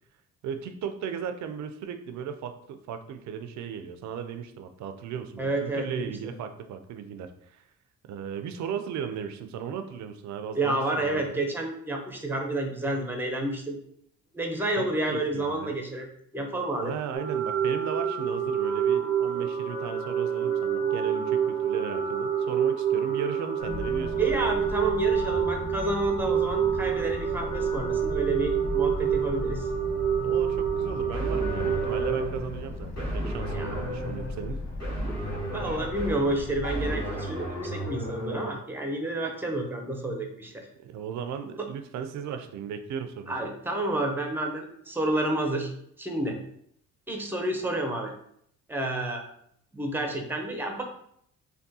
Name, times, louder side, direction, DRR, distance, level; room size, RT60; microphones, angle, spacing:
voice 1, 0.4-7.6 8.1-11.4 14.8-15.8 16.8-24.1 30.2-34.6 40.8-43.4, right 7 dB, 70° right, 8 dB, 0.4 m, -36 dB
voice 2, 5.4-6.1 10.5-13.8 14.3-16.1 16.3-16.9 24.2-29.7 33.5-33.8 35.5-40.7 41.6-41.7 43.3-45.7 46.0-46.4 47.1-48.1 48.7-49.3 49.7-50.8, right 2 dB, 5° right, 2 dB, 0.6 m, -30 dB
sound 1, 17.1-32.2, right 8 dB, 35° left, 0.8 m, -27 dB
sound 2, 23.6-36.9, left 2 dB, 80° left, 0.8 m, -37 dB
sound 3, 31.1-38.5, equal, 55° left, 1.4 m, -34 dB
3.5 x 2.3 x 2.7 m, 0.69 s
cardioid pair, 90°, 30 cm